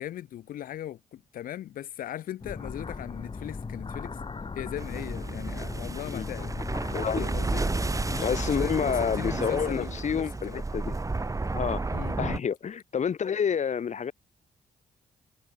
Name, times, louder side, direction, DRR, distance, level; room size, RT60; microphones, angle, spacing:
voice 1, 0.0-4.2 4.5-6.5 7.2-7.7 8.1-10.6 11.9-12.2, left 12 dB, 80° left, 2.2 m, -39 dB
sound 1, 2.4-9.4, left 4 dB, 35° left, 3.1 m, -38 dB
sound 2, 4.8-12.4, right 3 dB, 25° right, 1.8 m, -32 dB
voice 2, 6.9-7.3 7.6-7.7 8.2-10.9 11.5-11.8 12.2-14.1, left 7 dB, 55° left, 2.3 m, -29 dB
supercardioid pair, 60°, 14 cm